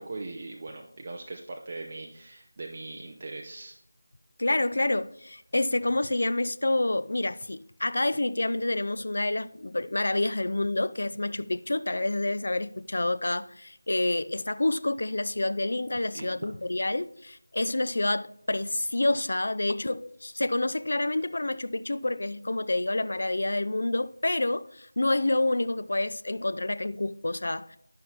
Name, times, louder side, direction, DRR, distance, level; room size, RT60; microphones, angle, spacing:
voice 1, 0.0-3.8 16.1-16.5, right 2 dB, 30° right, 0.5 m, -40 dB
voice 2, 4.4-27.8, left 2 dB, 60° left, 0.3 m, -28 dB
11.0 x 5.6 x 2.9 m
figure-of-eight pair, 170°, 0 cm